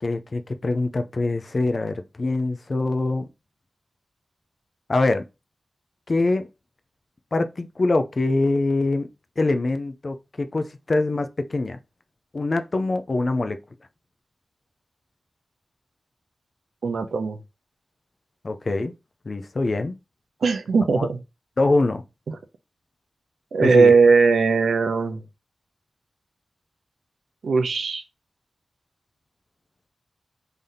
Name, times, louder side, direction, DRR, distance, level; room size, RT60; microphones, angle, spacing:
voice 1, 0.0-3.3 4.9-5.2 6.1-6.5 7.3-9.1 9.4-11.8 12.3-13.6 18.4-18.9 19.3-20.0 21.0-21.1 21.6-22.0 23.6-23.9, left 2 dB, 40° left, 0.4 m, -24 dB
voice 2, 16.8-17.4 20.4-21.2 22.3-22.4 23.5-25.2 27.4-28.0, right 4 dB, 85° right, 0.6 m, -19 dB
3.4 x 2.7 x 3.7 m
wide cardioid pair, 120°, 0 cm